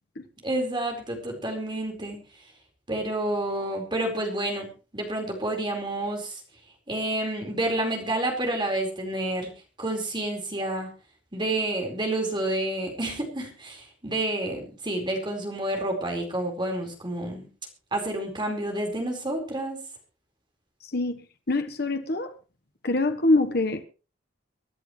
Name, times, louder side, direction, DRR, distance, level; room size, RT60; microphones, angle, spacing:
voice 1, 0.4-2.2 2.9-6.4 6.9-9.5 9.8-10.9 11.3-17.5 17.9-19.8, right 1 dB, 25° right, 4.6 m, -29 dB
voice 2, 21.5-22.3 22.8-23.8, left 2 dB, 55° left, 1.2 m, -24 dB
25.0 x 11.0 x 3.2 m
head